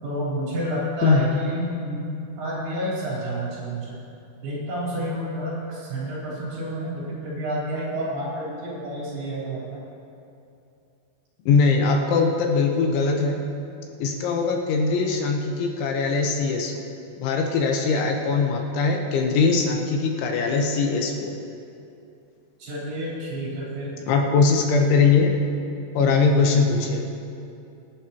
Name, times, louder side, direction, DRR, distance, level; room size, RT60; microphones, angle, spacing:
voice 1, 0.0-4.0 4.4-9.8 22.6-24.0 26.1-26.6, right 1 dB, 60° right, -8 dB, 5.6 m, -30 dB
voice 2, 1.0-1.3 11.5-13.4 14.0-16.8 17.2-21.3 24.1-25.3 26.0-27.1, left 4 dB, 80° left, 1 dB, 3.4 m, -21 dB
25.0 x 11.0 x 3.0 m, 2.6 s
omnidirectional pair, 5.4 m